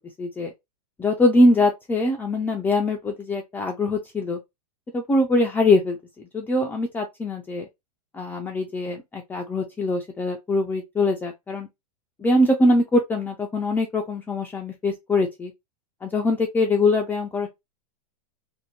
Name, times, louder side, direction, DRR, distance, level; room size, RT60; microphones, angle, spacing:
voice 1, 0.2-0.5 1.0-4.4 4.9-7.7 8.1-11.7 12.2-15.5 16.0-17.5, left 2 dB, 10° left, 0.3 m, -22 dB
2.6 x 2.1 x 2.8 m
hypercardioid pair, 125°, 20 cm